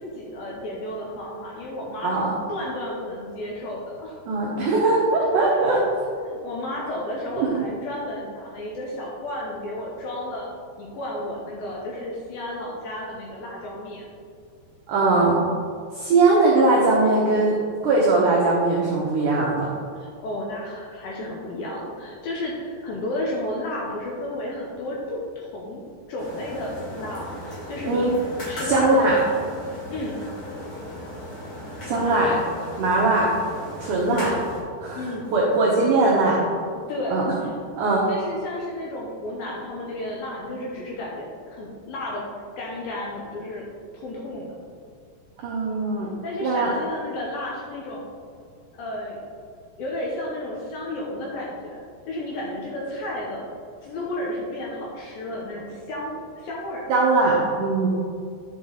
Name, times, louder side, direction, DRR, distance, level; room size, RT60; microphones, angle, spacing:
voice 1, 0.0-4.1 5.5-5.6 6.3-10.5 10.8-14.1 19.9-25.8 26.1-28.1 28.4-30.2 31.9-32.4 34.1-34.3 34.9-35.3 36.9-37.3 38.1-42.2 42.6-43.6 43.9-44.5 46.2-48.0 48.7-49.2 49.8-51.8 52.1-53.5 53.8-56.8, left 1 dB, 70° left, -3 dB, 2.4 m, -32 dB
voice 2, 4.3-5.8 7.4-7.7 14.9-15.4 15.9-17.6 17.8-19.8 27.8-28.2 28.7-29.2 31.8-32.3 32.8-33.3 33.8-34.3 34.8-35.0 35.3-36.4 37.1-37.3 37.8-38.1 45.4-46.1 46.4-46.7 56.9-57.9, right 3 dB, 85° right, -4 dB, 1.7 m, -20 dB
sound 1, 26.2-34.6, equal, 45° left, 1.9 m, -37 dB
11.0 x 5.3 x 3.9 m, 2.2 s
omnidirectional pair, 5.1 m